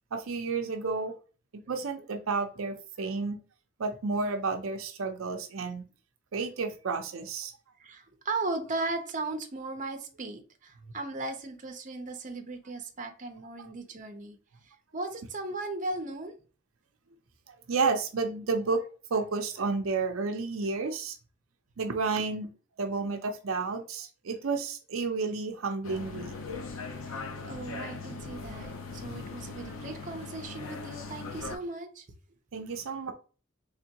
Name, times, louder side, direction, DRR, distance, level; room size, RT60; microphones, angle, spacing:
voice 1, 0.1-1.1 1.5-3.4 3.8-5.8 6.3-7.5 13.6-13.7 17.5-21.2 21.8-22.5 22.8-26.4 32.5-33.1, right 4 dB, 80° right, 0.6 m, -31 dB
voice 2, 7.8-14.4 14.9-16.3 27.1-32.1, right 2 dB, 40° right, 0.7 m, -37 dB
sound 1, 25.8-31.6, left 4 dB, 85° left, 0.7 m, -40 dB
3.6 x 3.5 x 2.9 m
head